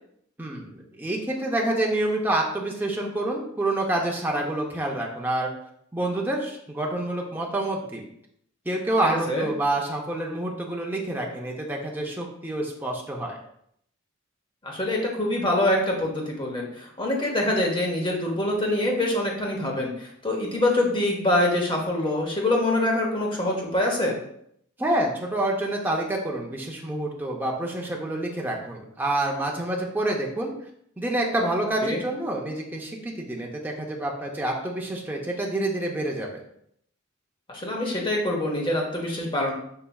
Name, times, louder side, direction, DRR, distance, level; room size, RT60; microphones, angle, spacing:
voice 1, 0.4-5.5 5.9-8.0 8.7-13.4 24.8-30.5 31.0-36.4, right 1 dB, 10° right, -1 dB, 0.5 m, -27 dB
voice 2, 14.6-24.2 31.8-32.0 37.5-39.5, left 1 dB, 25° left, -1 dB, 0.8 m, -25 dB
5.6 x 3.2 x 2.3 m, 0.71 s
head